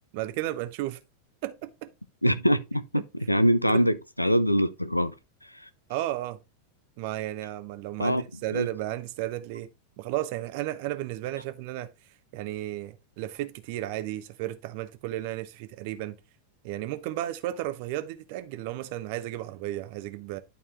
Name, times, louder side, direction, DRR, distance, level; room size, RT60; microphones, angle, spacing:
voice 1, 0.1-1.0 1.4-1.9 2.9-3.0 3.7-3.8 5.9-6.4 7.0-9.7 10.0-11.9 12.3-16.2 16.6-20.4, right 14 dB, 45° right, 1.0 m, -33 dB
voice 2, 2.2-5.1 5.5-5.7 8.0-8.2 8.5-8.7, equal, 90° left, 0.6 m, -24 dB
11.5 x 4.2 x 3.4 m
figure-of-eight pair, 90°, 0 cm